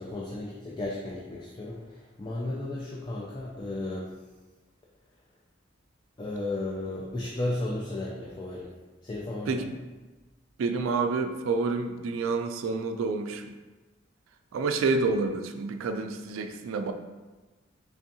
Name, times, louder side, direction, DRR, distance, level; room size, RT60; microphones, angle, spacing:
voice 1, 0.0-4.1 6.2-8.7 9.0-9.7, left 2 dB, 20° left, -4 dB, 0.3 m, -34 dB
voice 2, 9.5-9.8 10.6-13.5 14.5-16.9, right 4 dB, 85° right, 7 dB, 0.3 m, -28 dB
3.5 x 3.4 x 2.7 m, 1.2 s
head